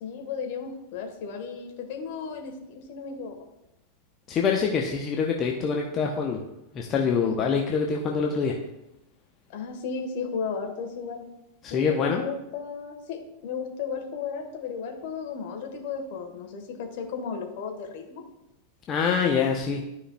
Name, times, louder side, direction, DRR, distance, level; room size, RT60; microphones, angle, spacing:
voice 1, 0.0-3.5 7.1-7.3 9.5-11.2 11.7-18.2, left 5 dB, 50° left, 3 dB, 1.3 m, -34 dB
voice 2, 4.3-6.4 6.7-8.6 11.6-12.2 18.9-19.8, left 6 dB, 30° left, 1 dB, 0.7 m, -25 dB
12.5 x 4.8 x 2.3 m, 0.87 s
figure-of-eight pair, 90°, 0 cm